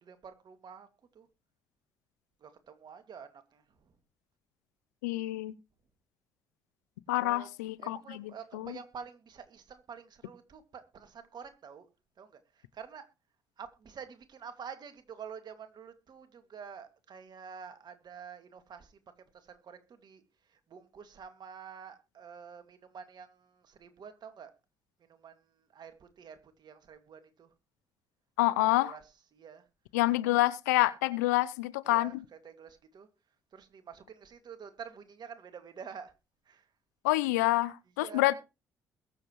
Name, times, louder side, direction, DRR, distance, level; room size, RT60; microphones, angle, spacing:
voice 1, 0.0-0.9 1.1-1.3 2.4-3.9 7.1-7.5 7.8-11.9 12.2-13.1 13.6-18.9 19.3-20.2 20.5-24.5 25.0-25.5 25.7-27.5 28.6-29.0 29.3-29.6 31.9-33.1 33.5-36.1 36.5-36.7 38.0-38.3, right 6 dB, 55° right, 2.3 m, -48 dB
voice 2, 5.0-5.5 7.1-8.8 28.4-29.0 29.9-32.2 37.0-38.3, left 18 dB, 85° left, 0.6 m, -28 dB
22.0 x 7.6 x 3.1 m
hypercardioid pair, 45°, 9 cm